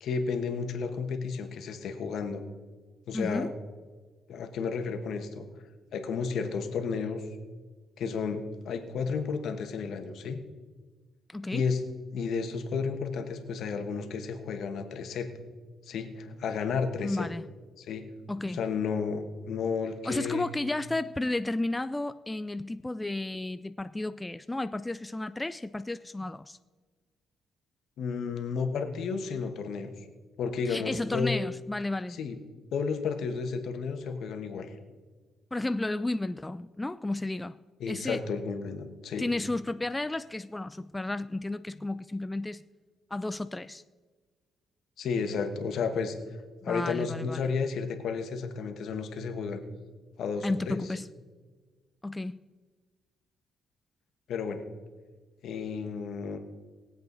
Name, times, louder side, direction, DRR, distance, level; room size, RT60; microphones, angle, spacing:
voice 1, 0.0-2.4 3.1-3.5 4.3-5.4 5.9-7.2 8.0-10.4 11.5-11.8 12.1-15.3 15.9-17.3 17.8-18.0 18.5-20.4 28.0-30.0 30.4-31.4 32.2-32.4 32.7-34.7 37.8-39.3 45.0-46.2 46.6-49.6 50.2-50.8 54.3-54.6 55.4-56.4, left 5 dB, 70° left, 1.4 m, -32 dB
voice 2, 3.1-3.5 11.3-11.6 17.0-17.4 18.3-18.6 20.0-26.6 30.7-32.2 35.5-37.6 37.9-38.2 39.2-42.6 43.1-43.8 46.6-47.5 50.4-51.1 52.0-52.4, left 2 dB, 15° left, 0.3 m, -33 dB
20.5 x 7.9 x 4.0 m
cardioid pair, 90°, 0 cm